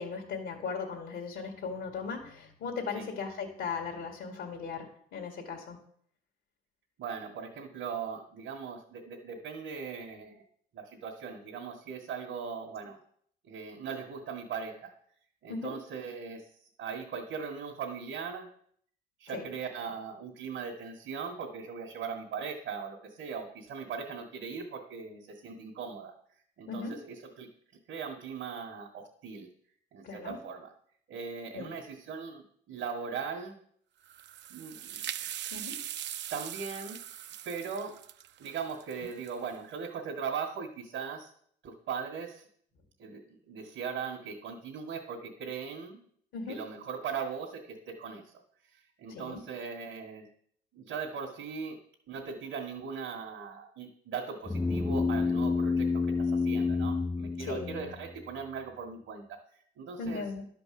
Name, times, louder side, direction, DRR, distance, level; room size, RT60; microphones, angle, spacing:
voice 1, 0.0-5.8 15.5-15.8 19.3-19.5 26.7-27.0 30.0-30.4 31.5-31.8 35.5-35.8 46.3-46.6 49.1-49.4 57.4-57.9 60.0-60.4, left 5 dB, 85° left, 1 dB, 2.1 m, -37 dB
voice 2, 7.0-10.4 10.7-13.0 13.5-14.9 15.4-16.5 16.8-18.5 19.2-26.1 26.6-27.5 27.9-29.5 29.9-30.7 31.1-33.6 34.5-35.0 36.3-37.0 37.4-38.0 38.4-41.3 41.6-42.4 43.0-46.1 46.5-48.3 49.0-50.3 50.7-51.8 52.1-60.2, right 6 dB, 80° right, -3 dB, 2.0 m, -39 dB
sound 1, 34.0-39.6, right 11 dB, 65° right, 0.5 m, -41 dB
sound 2, 54.5-58.2, left 4 dB, 10° left, 0.4 m, -29 dB
11.5 x 5.2 x 7.8 m, 0.63 s
cardioid pair, 90°, 20 cm